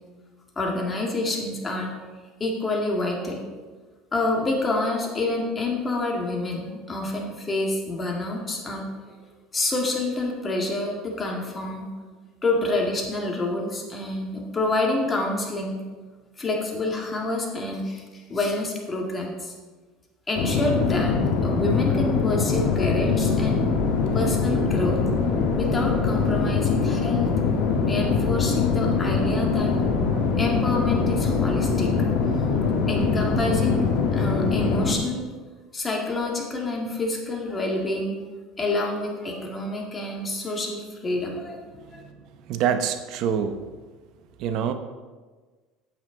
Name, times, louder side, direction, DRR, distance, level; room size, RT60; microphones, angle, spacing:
voice 1, 0.6-1.9 2.4-3.4 4.1-8.9 9.5-11.9 12.4-15.8 16.4-19.5 20.3-21.1 21.4-23.6 24.1-25.0 25.5-29.7 30.4-31.9 32.9-33.8 34.1-35.2 35.7-38.1 38.6-42.0, left 2 dB, 20° left, 0 dB, 1.8 m, -27 dB
sound 1, 20.4-35.0, left 5 dB, 65° left, 1.4 m, -23 dB
voice 2, 42.4-43.7 44.4-44.7, right 8 dB, 60° right, 8 dB, 0.8 m, -26 dB
8.8 x 7.8 x 3.8 m, 1.4 s
supercardioid pair, 120°, 0 cm